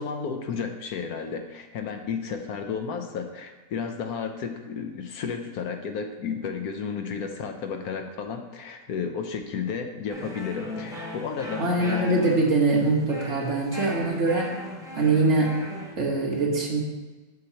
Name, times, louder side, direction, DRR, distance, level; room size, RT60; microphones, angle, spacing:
voice 1, 0.0-11.7, left 6 dB, 75° left, 6 dB, 1.1 m, -32 dB
sound 1, 10.1-16.0, left 1 dB, 5° right, 0.5 m, -38 dB
voice 2, 11.6-14.5 14.9-15.5 16.0-16.8, right 3 dB, 50° right, -2 dB, 1.5 m, -23 dB
7.6 x 6.7 x 2.8 m, 1.2 s
omnidirectional pair, 1.7 m